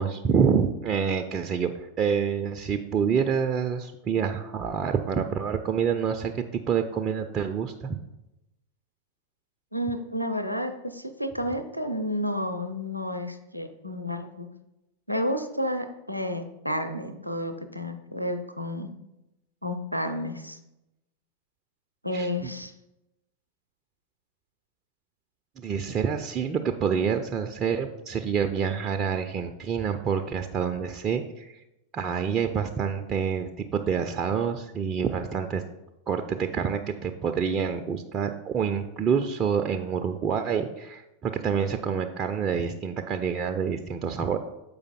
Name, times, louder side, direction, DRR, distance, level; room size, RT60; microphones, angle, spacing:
voice 1, 0.0-8.0 22.1-22.5 25.6-31.6 31.9-35.6 36.1-44.4, right 7 dB, 30° right, 5 dB, 0.4 m, -27 dB
voice 2, 9.7-14.5 15.1-18.9 19.6-20.6 22.0-22.7, equal, 90° right, 9 dB, 0.6 m, -31 dB
7.0 x 5.0 x 4.2 m, 0.92 s
figure-of-eight pair, 90°, 0 cm